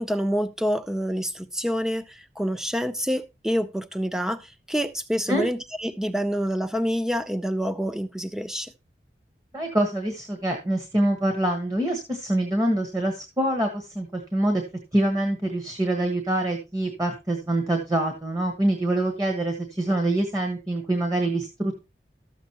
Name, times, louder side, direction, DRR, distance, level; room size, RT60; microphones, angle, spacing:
voice 1, 0.0-8.7, equal, 5° right, 0.5 m, -27 dB
voice 2, 9.5-14.6 14.9-21.7, right 1 dB, 20° right, 1.3 m, -25 dB
13.0 x 7.2 x 2.9 m
head